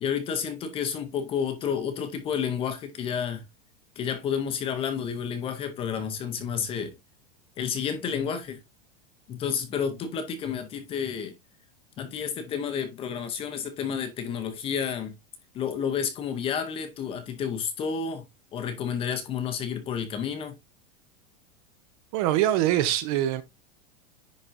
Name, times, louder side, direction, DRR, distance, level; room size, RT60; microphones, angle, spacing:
voice 1, 0.0-3.4 4.0-7.0 7.6-8.6 9.3-11.3 12.0-15.1 15.5-18.2 18.5-20.6, left 7 dB, 20° left, 0.7 m, -30 dB
voice 2, 22.1-23.4, right 13 dB, 40° right, 0.7 m, -23 dB
10.5 x 3.8 x 2.6 m
supercardioid pair, 175°, 29 cm